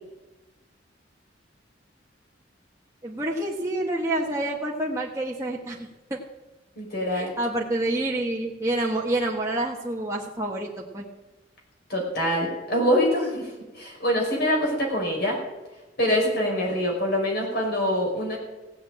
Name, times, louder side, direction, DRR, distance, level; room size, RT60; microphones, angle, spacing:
voice 1, 3.0-6.2 7.1-11.0, right 1 dB, 15° right, -3 dB, 1.4 m, -28 dB
voice 2, 6.8-7.3 11.9-13.5 13.8-15.4 16.0-18.4, equal, 55° left, -1 dB, 5.6 m, -24 dB
17.0 x 8.2 x 8.6 m, 1.1 s
head